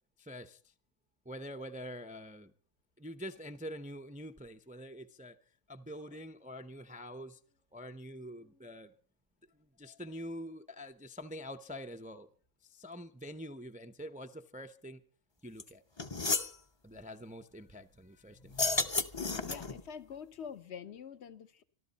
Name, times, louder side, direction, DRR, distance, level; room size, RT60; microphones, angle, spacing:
voice 1, 0.2-0.7 1.2-2.5 3.0-5.4 5.7-7.4 7.7-8.9 9.5-12.3 12.6-15.0 15.4-15.8 16.8-18.7 20.4-20.5, equal, 10° right, 0.5 m, -46 dB
sound 1, 15.6-15.7 16.0-16.5 18.5-19.8, left 3 dB, 25° left, 0.8 m, -32 dB
voice 2, 19.2-21.6, left 7 dB, 55° left, 1.2 m, -46 dB
25.0 x 13.0 x 4.1 m
omnidirectional pair, 1.4 m